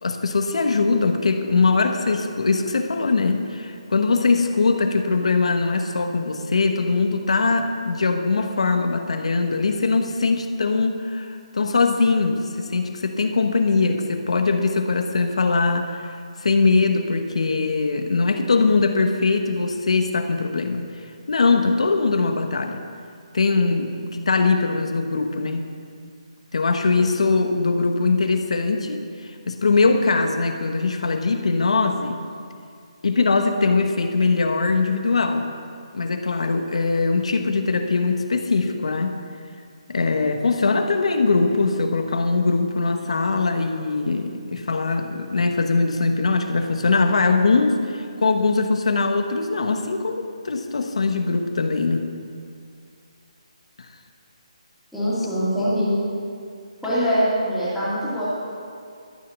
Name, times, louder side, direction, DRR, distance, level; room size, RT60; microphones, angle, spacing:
voice 1, 0.0-20.9 21.3-22.8 23.3-25.7 26.5-32.2 33.0-35.5 35.9-39.2 39.9-52.1, left 4 dB, 65° left, 6 dB, 1.1 m, -21 dB
voice 2, 54.9-55.9 56.8-58.3, equal, ahead, -14 dB, 2.6 m, -23 dB
13.0 x 6.9 x 7.3 m, 2.3 s
hypercardioid pair, 175°, 4 cm